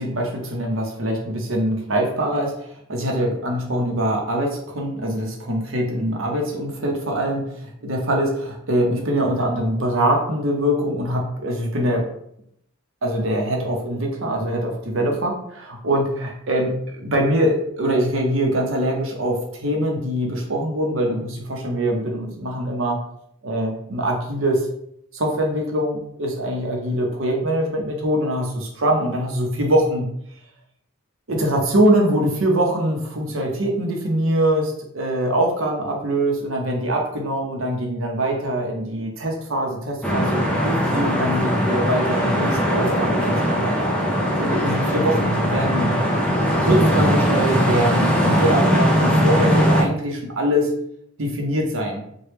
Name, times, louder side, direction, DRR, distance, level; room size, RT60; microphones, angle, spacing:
voice 1, 0.0-12.0 13.0-23.0 23.4-24.7 25.1-30.1 31.3-43.9 44.4-45.9 46.6-50.7 51.2-52.0, right 1 dB, 60° right, 1 dB, 0.7 m, -23 dB
sound 1, 40.0-49.8, equal, 5° left, 0.5 m, -20 dB
3.1 x 2.2 x 3.2 m, 0.72 s
head